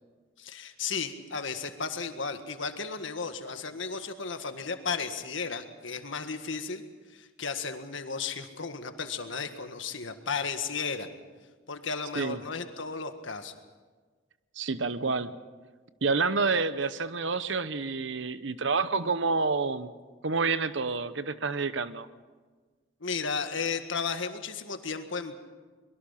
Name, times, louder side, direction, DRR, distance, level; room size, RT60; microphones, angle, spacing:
voice 1, 0.4-6.8 7.1-11.1 11.7-13.6 23.0-25.3, left 5 dB, 75° left, 7 dB, 1.7 m, -34 dB
voice 2, 14.6-15.3 16.0-19.9 20.2-22.1, right 4 dB, 70° right, 13 dB, 0.9 m, -28 dB
24.0 x 22.5 x 5.8 m, 1.4 s
head